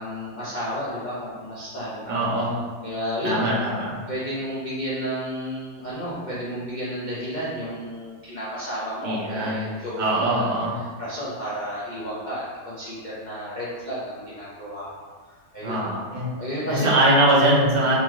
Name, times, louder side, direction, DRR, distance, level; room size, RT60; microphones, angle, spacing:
voice 1, 0.0-2.4 2.8-3.5 4.1-14.9 15.3-16.0 16.4-17.0 17.8-17.9, equal, 80° left, -9 dB, 0.4 m, -32 dB
voice 2, 2.1-2.5 3.2-4.0 9.0-9.6 10.0-10.7 15.6-16.3 16.7-18.0, right 1 dB, 85° right, -5 dB, 1.8 m, -22 dB
4.2 x 3.1 x 3.6 m, 1.5 s
omnidirectional pair, 2.0 m